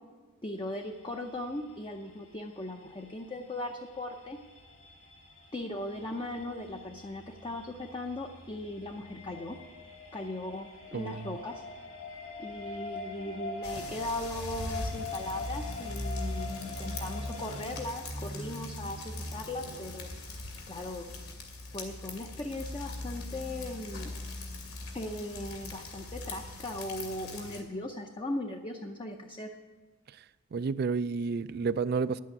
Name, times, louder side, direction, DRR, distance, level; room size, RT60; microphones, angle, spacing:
voice 1, 0.4-4.4 5.5-9.6 10.1-11.6 12.4-20.1 20.7-21.1 21.7-24.1 24.9-29.5, left 1 dB, 20° left, 0.6 m, -38 dB
sound 1, 0.6-17.7, left 4 dB, 55° left, 2.3 m, -44 dB
voice 2, 10.9-11.4 30.5-32.2, right 5 dB, 45° right, 0.3 m, -30 dB
sound 2, 13.6-27.6, left 1 dB, 90° left, 2.5 m, -40 dB
10.5 x 8.4 x 9.0 m
head